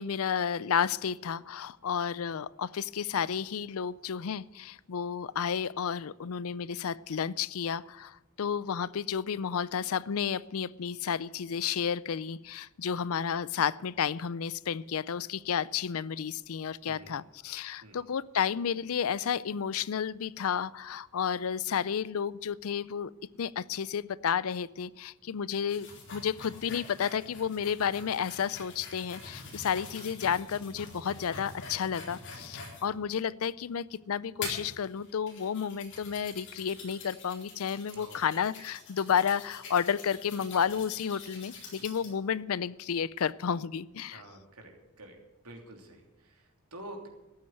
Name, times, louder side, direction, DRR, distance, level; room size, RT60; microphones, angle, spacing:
voice 1, 0.0-23.1 23.4-44.2, left 7 dB, 70° left, 21 dB, 0.4 m, -32 dB
sound 1, 25.7-32.9 33.4-33.5 34.4-42.1, left 3 dB, 55° left, 4.0 m, -45 dB
voice 2, 37.9-38.3 41.8-41.9 44.1-45.2 45.4-47.1, right 1 dB, 90° right, 3 dB, 3.1 m, -48 dB
14.0 x 8.6 x 9.3 m, 0.99 s
head